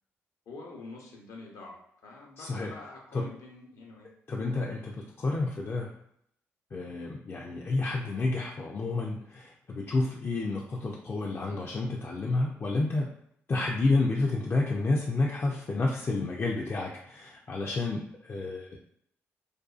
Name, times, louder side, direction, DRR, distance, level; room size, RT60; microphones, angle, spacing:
voice 1, 0.5-1.8 2.0-4.1 4.7-4.8, left 3 dB, 70° left, -1 dB, 0.8 m, -46 dB
voice 2, 2.4-2.7 3.1-3.2 4.3-5.9 6.7-13.1 13.5-18.8, left 3 dB, 40° left, -2 dB, 0.4 m, -30 dB
2.5 x 2.3 x 2.4 m, 0.71 s
supercardioid pair, 55°, 6 cm